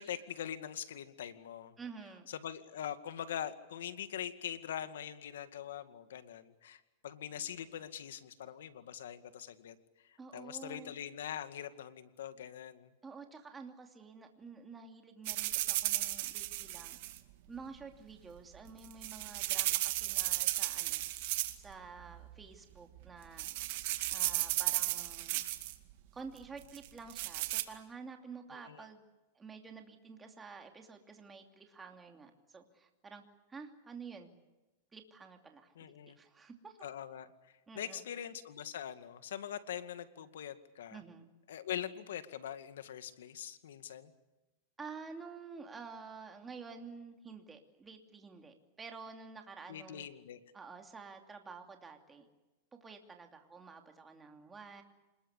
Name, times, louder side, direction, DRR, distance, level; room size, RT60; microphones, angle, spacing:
voice 1, 0.0-1.7 2.3-9.8 10.1-12.9 28.5-28.8 35.8-36.2 36.8-41.0 41.5-44.1 49.7-50.4, left 10 dB, 85° left, 10 dB, 2.1 m, -43 dB
voice 2, 1.8-2.3 10.2-11.0 13.0-17.0 17.5-21.0 21.6-23.4 24.1-25.4 26.1-29.0 29.3-33.2 33.5-34.3 34.9-35.7 36.0-36.8 37.7-38.0 40.9-41.3 44.8-50.1 50.5-52.3 52.7-54.8, right 5 dB, 15° right, 4 dB, 2.8 m, -50 dB
sound 1, 15.3-17.2 18.7-21.7 22.0-22.4 23.0-23.1 23.4-25.7 26.7-27.6, right 18 dB, 60° right, 2.1 m, -34 dB
27.0 x 21.0 x 8.3 m, 1.1 s
supercardioid pair, 140°, 0 cm